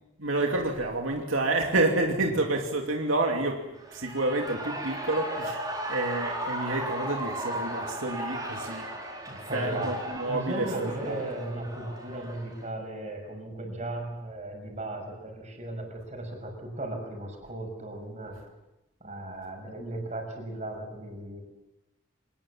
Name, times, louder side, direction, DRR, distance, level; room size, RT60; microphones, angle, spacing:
voice 1, 0.2-8.9 9.5-11.2, right 2 dB, 85° right, 2 dB, 2.7 m, -29 dB
Shout / Cheering, 3.7-12.7, right 1 dB, 20° right, 4.8 m, -36 dB
voice 2, 9.3-9.9 10.3-18.4 19.0-21.4, right 1 dB, 35° right, 2 dB, 6.2 m, -36 dB
26.5 x 20.0 x 7.5 m, 0.96 s
head